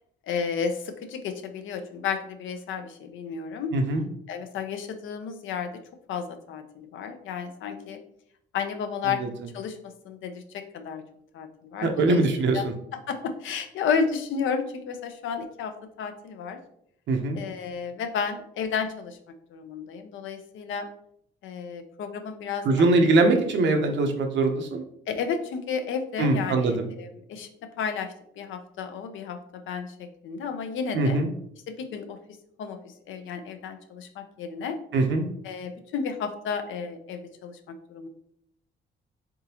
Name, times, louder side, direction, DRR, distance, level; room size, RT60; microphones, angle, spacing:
voice 1, 0.3-3.7 4.3-5.7 6.1-8.0 8.5-9.2 9.5-9.8 10.0-11.0 11.3-12.2 12.5-12.7 13.1-15.7 16.0-16.6 17.3-19.2 19.5-20.9 21.4-22.6 25.1-27.5 27.8-31.2 31.7-32.2 32.6-34.8 35.4-37.6 37.9-38.1, left 6 dB, 75° left, 7 dB, 0.6 m, -32 dB
voice 2, 3.7-4.0 9.2-9.3 11.8-12.6 17.1-17.4 22.6-24.8 26.2-26.9 30.9-31.3 34.9-35.3, right 2 dB, 65° right, 5 dB, 0.8 m, -22 dB
3.7 x 3.6 x 2.9 m, 0.71 s
cardioid pair, 90°, 20 cm